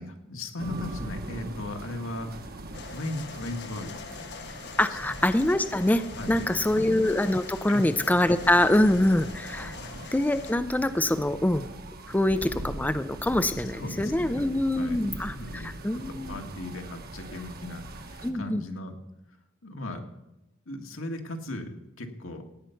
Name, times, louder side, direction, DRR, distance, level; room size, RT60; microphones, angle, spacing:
voice 1, 0.0-2.3 2.9-4.0 4.9-5.1 6.2-6.5 7.7-7.8 9.8-9.9 13.4-15.7 16.1-18.9 19.6-20.0 20.6-22.4, left 1 dB, 75° left, 4 dB, 1.8 m, -37 dB
sound 1, 0.6-18.3, right 1 dB, 50° right, 1.2 m, -41 dB
sound 2, 2.7-10.5, left 5 dB, 55° left, 0.9 m, -43 dB
voice 2, 4.8-9.8 10.1-11.7 12.1-16.4 18.2-18.6, left 1 dB, 10° left, 11 dB, 0.4 m, -25 dB
16.5 x 9.3 x 5.8 m, 0.94 s
head